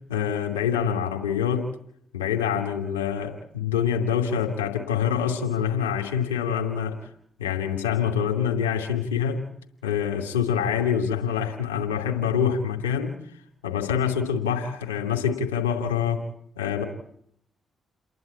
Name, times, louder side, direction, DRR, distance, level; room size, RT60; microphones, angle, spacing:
voice 1, 0.1-1.7 2.1-7.0 7.4-9.4 9.8-13.1 13.6-16.2 16.6-16.8, left 8 dB, 90° left, 3 dB, 2.6 m, -25 dB
29.0 x 11.5 x 8.5 m, 0.69 s
hypercardioid pair, 40°, 0 cm